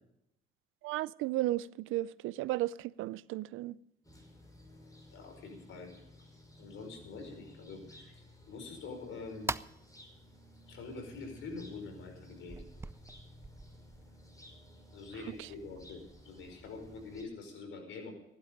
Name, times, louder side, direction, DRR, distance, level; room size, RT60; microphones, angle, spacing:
voice 1, 0.8-3.8 15.4-15.5, right 16 dB, 90° right, 0.5 m, -34 dB
sound 1, 4.0-17.2, left 1 dB, 15° left, 5.4 m, -56 dB
sound 2, 5.0-5.3 5.9-6.0 6.4-6.5 7.0-7.7 8.1-8.2 8.7-8.8 9.2-10.4 10.9-11.0 11.4-11.5 12.0-12.1 12.5-17.5, right 3 dB, 15° right, 0.5 m, -45 dB
voice 2, 5.1-5.9 6.6-9.5 10.7-12.6 14.9-18.1, left 4 dB, 80° left, 5.1 m, -45 dB
16.0 x 11.5 x 5.2 m
cardioid pair, 90°, 20 cm